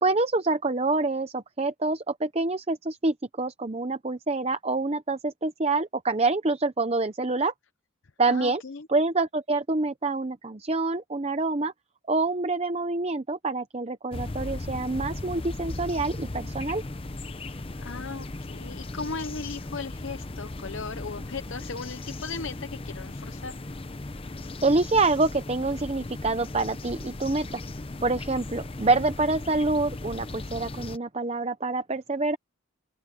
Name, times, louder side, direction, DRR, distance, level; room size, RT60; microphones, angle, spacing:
voice 1, 0.0-7.5 8.2-8.6 8.9-11.7 12.1-16.8 24.6-27.6 28.0-32.4, right 3 dB, 30° right, 0.7 m, -26 dB
voice 2, 8.3-8.9 17.7-23.6, left 4 dB, 60° left, 0.7 m, -37 dB
sound 1, 14.1-31.0, left 2 dB, 25° left, 0.7 m, -37 dB
open air
head